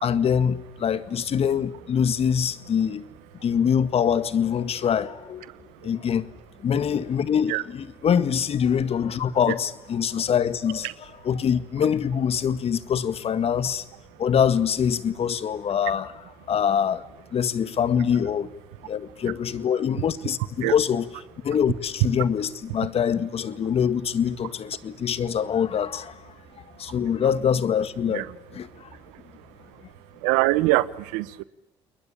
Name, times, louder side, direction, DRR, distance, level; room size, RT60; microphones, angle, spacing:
voice 1, 0.0-3.1 3.4-5.5 5.8-6.3 6.6-10.9 11.2-13.8 14.2-16.1 16.5-17.0 17.3-18.5 18.9-21.1 21.4-26.2 26.8-28.3 28.5-28.9, left 8 dB, 55° left, 1.8 m, -24 dB
voice 2, 30.2-31.4, right 19 dB, 85° right, 1.0 m, -23 dB
29.5 x 21.5 x 8.6 m
supercardioid pair, 65°, 12 cm